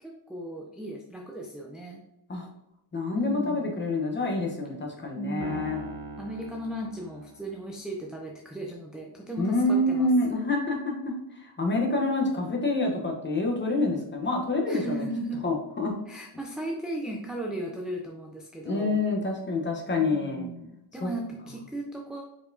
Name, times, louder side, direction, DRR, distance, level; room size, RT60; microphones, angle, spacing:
voice 1, 0.0-2.0 3.1-3.8 5.2-5.8 6.2-10.1 14.7-15.4 16.1-19.0 20.0-22.2, right 1 dB, ahead, -1 dB, 0.3 m, -36 dB
voice 2, 2.9-5.8 9.4-15.0 15.4-15.9 18.6-20.5 21.0-21.1, left 2 dB, 20° left, 0 dB, 0.9 m, -27 dB
Piano, 5.4-7.8, right 3 dB, 65° right, 0.9 m, -40 dB
4.8 x 4.2 x 2.7 m, 0.86 s
cardioid pair, 130°, 50 cm